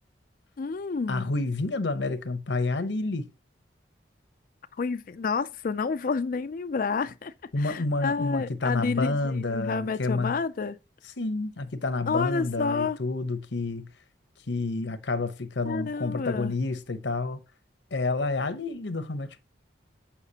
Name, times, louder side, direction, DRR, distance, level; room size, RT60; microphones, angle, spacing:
voice 1, 0.6-1.3 4.8-10.8 12.1-13.0 15.6-16.5, left 4 dB, 50° left, 0.4 m, -30 dB
voice 2, 1.1-3.3 7.5-10.3 11.2-13.9 14.5-17.4 17.9-19.4, left 3 dB, 75° left, 0.9 m, -29 dB
8.2 x 5.7 x 2.8 m
head